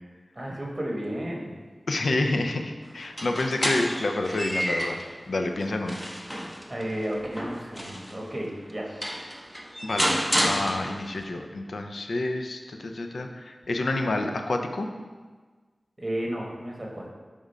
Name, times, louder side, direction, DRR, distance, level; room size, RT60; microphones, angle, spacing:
voice 1, 0.3-1.6 6.7-8.9 16.0-17.1, equal, 25° right, -2 dB, 1.2 m, -33 dB
voice 2, 1.9-5.0 5.3-6.0 9.8-14.9, left 2 dB, 85° left, 5 dB, 0.5 m, -28 dB
sound 1, 3.0-5.1 5.6-8.2 8.7-8.8 9.0-11.2, equal, ahead, 0.7 m, -30 dB
5.0 x 3.6 x 5.4 m, 1.4 s
wide cardioid pair, 60°, 0 cm